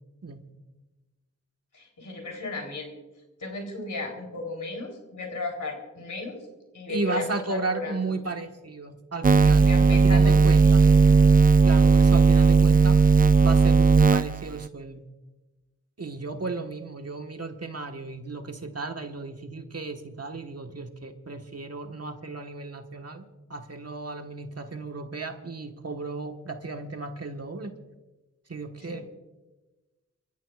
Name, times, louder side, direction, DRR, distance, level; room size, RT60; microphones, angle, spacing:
voice 1, 1.7-2.9 3.4-6.5 6.7-8.2 9.4-11.3 11.7-11.9 28.8-29.0, left 2 dB, 75° left, 2 dB, 3.8 m, -36 dB
voice 2, 6.9-9.6 10.0-10.8 11.6-13.0 13.4-15.0 16.0-23.2 23.5-27.7 28.5-29.0, right 3 dB, 50° right, 4 dB, 1.6 m, -34 dB
sound 1, 9.2-14.7, right 5 dB, 30° right, 0.4 m, -17 dB
28.0 x 14.5 x 2.5 m, 1.1 s
cardioid pair, 55°, 31 cm